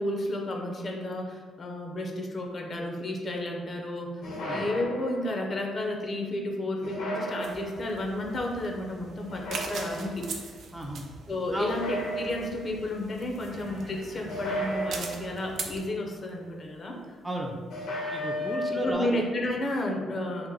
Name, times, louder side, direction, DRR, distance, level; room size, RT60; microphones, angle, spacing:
voice 1, 0.0-10.3 11.3-17.0 18.7-20.5, left 1 dB, 45° left, 1 dB, 0.6 m, -32 dB
sound 1, 4.2-5.4 6.8-8.0 9.3-10.3 11.6-12.8 14.3-15.6 17.7-18.9, equal, 75° left, 0.9 m, -34 dB
sound 2, 7.4-15.8, right 4 dB, 65° right, 0.5 m, -42 dB
voice 2, 10.7-11.0 11.5-11.7 17.2-17.6 18.1-19.2, right 1 dB, 10° right, 1 dB, 0.4 m, -33 dB
sound 3, 13.5-19.1, right 1 dB, 40° right, 1.0 m, -50 dB
2.9 x 2.5 x 3.7 m, 1.5 s
cardioid pair, 90°, 0 cm